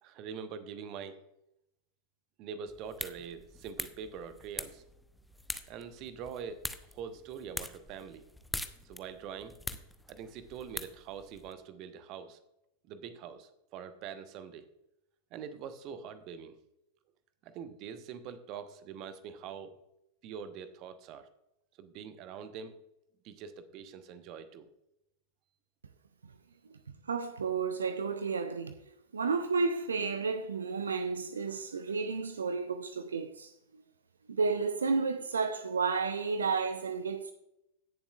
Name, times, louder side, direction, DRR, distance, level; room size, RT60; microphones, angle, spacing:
voice 1, 0.0-1.2 2.4-4.8 5.7-6.6 6.9-8.2 8.8-9.5 10.1-12.4 12.9-14.7 15.3-16.6 17.4-19.8 20.2-21.3 21.8-22.7 23.2-24.7, right 7 dB, 40° right, 1.0 m, -44 dB
sound 1, 2.7-11.5, left 1 dB, 5° left, 0.7 m, -44 dB
voice 2, 27.1-28.7 29.1-33.5 34.3-37.3, right 4 dB, 70° right, 0.6 m, -32 dB
17.0 x 7.2 x 2.4 m
figure-of-eight pair, 90°, 0 cm